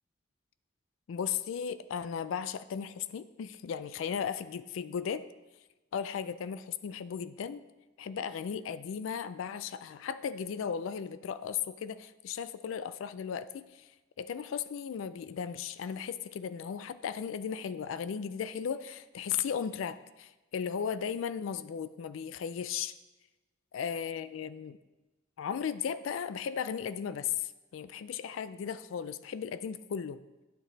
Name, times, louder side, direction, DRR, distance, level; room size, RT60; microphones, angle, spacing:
voice 1, 1.1-5.3 5.9-7.6 8.0-13.9 14.2-22.9 23.7-24.8 25.4-30.2, left 7 dB, 75° left, 14 dB, 0.3 m, -36 dB
10.5 x 6.3 x 4.0 m, 1.1 s
head